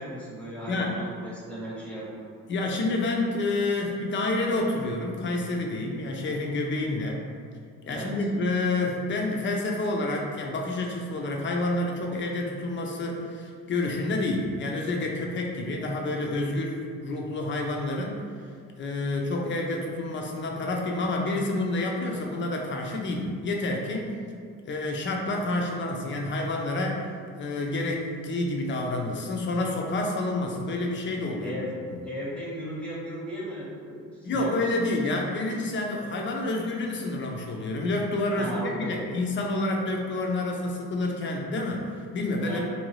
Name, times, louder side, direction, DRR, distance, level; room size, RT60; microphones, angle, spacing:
voice 1, 0.0-2.3 7.9-8.3 31.4-34.9 37.0-37.1 38.4-39.0 42.4-42.6, equal, 5° left, -7 dB, 0.8 m, -36 dB
voice 2, 2.5-7.2 7.9-18.2 18.8-24.1 24.7-27.1 27.4-31.5 31.9-32.0 34.2-42.6, left 2 dB, 40° left, 0 dB, 0.5 m, -28 dB
2.7 x 2.3 x 3.0 m, 2.2 s
cardioid pair, 85°, 31 cm